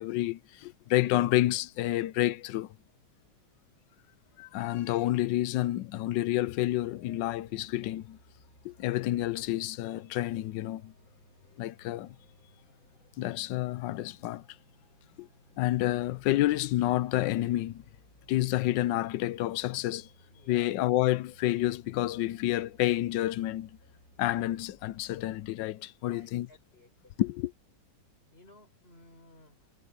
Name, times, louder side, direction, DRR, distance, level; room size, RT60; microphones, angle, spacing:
voice 1, 0.0-2.7 4.4-8.2 8.6-10.9 11.6-12.1 13.2-14.4 15.2-15.3 15.6-17.8 18.3-20.1 20.5-23.8 24.2-26.5 27.2-27.5, left 15 dB, 75° left, 1.2 m, -29 dB
sound 1, 6.8-25.5, left 1 dB, 45° left, 7.1 m, -61 dB
voice 2, 20.3-20.7 26.0-27.1 28.3-29.8, left 1 dB, 30° left, 5.5 m, -57 dB
omnidirectional pair, 2.2 m